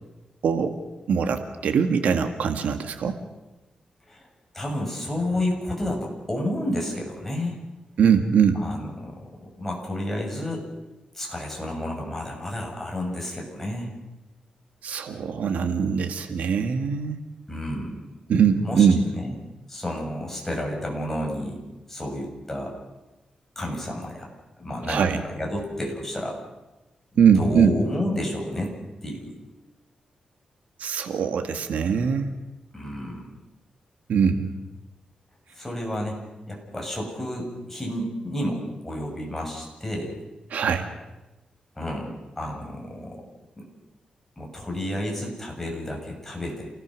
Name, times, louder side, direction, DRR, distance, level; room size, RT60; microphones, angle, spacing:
voice 1, 0.4-0.8 1.1-3.2 8.0-8.6 14.8-17.2 18.3-19.0 24.9-25.2 27.2-27.7 30.8-32.3 34.1-34.6 40.5-40.9, right 7 dB, 85° right, 6 dB, 1.9 m, -22 dB
voice 2, 4.5-7.6 8.6-10.7 11.1-13.9 17.5-18.1 18.6-18.9 19.1-19.3 19.7-21.6 21.9-22.7 23.5-24.3 24.6-26.4 27.1-28.7 29.0-29.4 32.7-33.3 35.5-36.2 36.5-40.2 41.7-43.2 43.6-43.7 44.4-46.7, left 1 dB, 10° left, -1 dB, 6.7 m, -31 dB
28.0 x 18.0 x 6.4 m, 1.1 s
wide cardioid pair, 115°, 2 cm